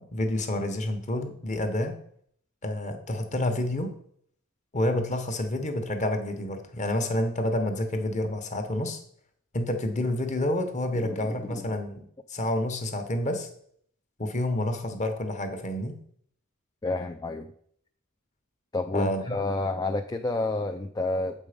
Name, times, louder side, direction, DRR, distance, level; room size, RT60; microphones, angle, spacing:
voice 1, 0.0-2.0 2.6-4.0 4.7-9.0 9.5-12.0 12.3-13.5 14.2-16.0 18.9-19.2, left 1 dB, 35° left, 6 dB, 1.1 m, -29 dB
voice 2, 10.9-11.8 16.8-17.5 18.7-21.5, left 2 dB, 20° left, 4 dB, 0.4 m, -30 dB
8.1 x 5.4 x 5.1 m, 0.64 s
head